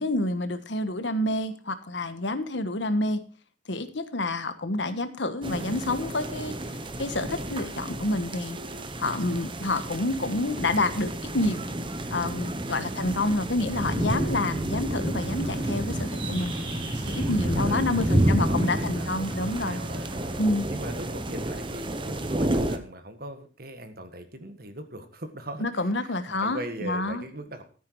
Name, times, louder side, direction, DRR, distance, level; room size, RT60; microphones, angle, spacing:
voice 1, 0.0-3.2 3.7-6.5 7.0-8.6 9.0-11.6 12.1-16.5 17.1-19.8 20.4-20.6 25.6-27.2, left 2 dB, 75° left, 11 dB, 1.4 m, -28 dB
sound 1, 5.4-22.8, right 1 dB, 25° right, 1.0 m, -30 dB
voice 2, 9.0-9.4 13.0-13.2 17.5-20.3 20.7-27.6, right 1 dB, 50° right, 8 dB, 1.7 m, -40 dB
sound 2, 15.2-20.4, right 2 dB, 70° right, 4.3 m, -44 dB
13.5 x 9.4 x 4.7 m, 0.39 s
head